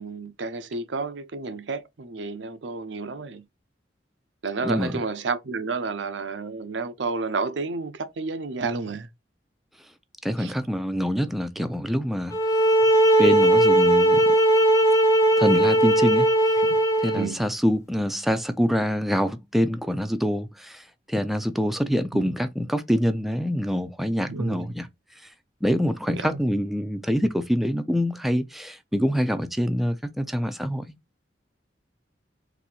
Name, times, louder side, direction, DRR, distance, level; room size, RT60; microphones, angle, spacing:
voice 1, 0.0-3.4 4.4-9.1 10.4-10.5 16.7-16.8 17.1-17.4 22.1-22.2 24.3-24.7 26.1-26.4, right 4 dB, 85° right, 0.6 m, -31 dB
voice 2, 4.6-5.0 10.2-12.3 13.2-14.3 15.4-16.3 17.0-24.9 25.6-30.9, equal, ahead, 0.4 m, -25 dB
sound 1, 12.3-17.3, right 1 dB, 20° left, 0.9 m, -18 dB
4.0 x 2.7 x 4.2 m
head